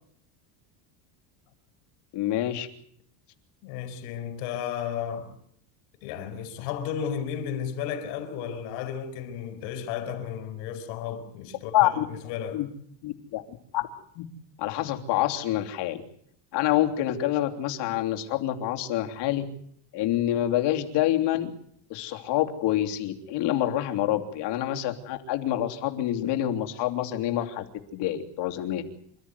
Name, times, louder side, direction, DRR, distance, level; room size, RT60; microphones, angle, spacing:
voice 1, 2.1-2.7 11.7-12.0 12.5-12.7 13.0-13.9 14.1-14.2 14.6-16.0 16.5-19.4 19.9-21.5 21.9-27.6 27.9-28.8, left 13 dB, 60° left, 3.2 m, -27 dB
voice 2, 3.6-5.3 6.0-12.6, left 8 dB, 80° left, 5.1 m, -33 dB
27.5 x 13.5 x 9.6 m
cardioid pair, 135°, 47 cm